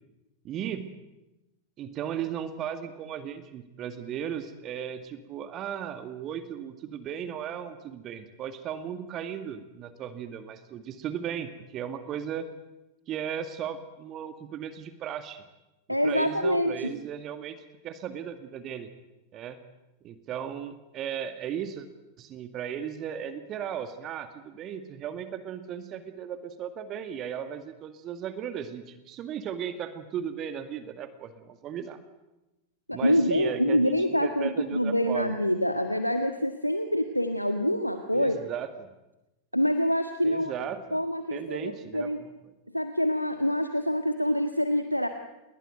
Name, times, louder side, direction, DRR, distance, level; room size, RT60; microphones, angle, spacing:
voice 1, 0.4-0.9 1.8-12.5 13.1-15.4 16.0-17.6 17.8-18.9 19.3-19.6 20.0-21.9 22.2-32.0 32.9-33.9 34.2-35.3 38.1-38.9 40.2-41.0 41.3-42.3, right 9 dB, 35° right, 10 dB, 2.0 m, -36 dB
voice 2, 15.9-16.9 32.9-38.4 39.5-42.2 42.7-45.1, equal, 90° left, 7 dB, 1.6 m, -26 dB
30.0 x 21.5 x 9.3 m, 1.0 s
figure-of-eight pair, 90°, 0 cm